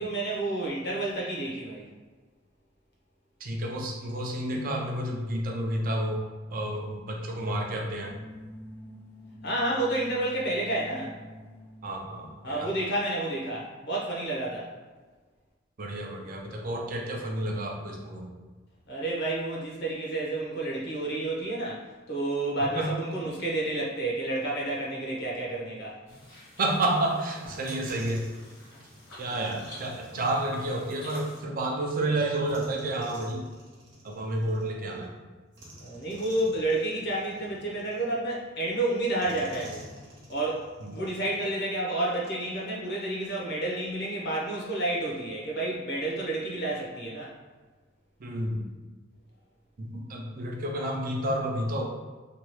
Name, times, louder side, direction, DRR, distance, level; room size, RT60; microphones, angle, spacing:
voice 1, 0.0-1.9 9.4-11.2 12.4-14.7 18.9-26.0 34.6-34.7 35.8-39.9 40.3-47.3 50.2-50.3, right 2 dB, 55° left, -3 dB, 0.8 m, -30 dB
voice 2, 3.4-6.2 6.5-8.2 11.8-12.7 15.8-18.3 22.8-22.9 26.6-28.2 29.2-33.5 34.0-35.1 40.8-41.0 48.2-48.7 49.8-51.9, right 1 dB, 45° right, 0 dB, 0.5 m, -30 dB
sound 1, 7.8-12.5, left 1 dB, 10° left, 0.5 m, -47 dB
sound 2, 26.1-31.4, left 1 dB, 75° left, 1.4 m, -48 dB
sound 3, 27.8-31.4 32.4-35.0 35.5-38.5 39.2-41.6, right 1 dB, 65° right, 0.9 m, -51 dB
2.9 x 2.3 x 3.0 m, 1.4 s
head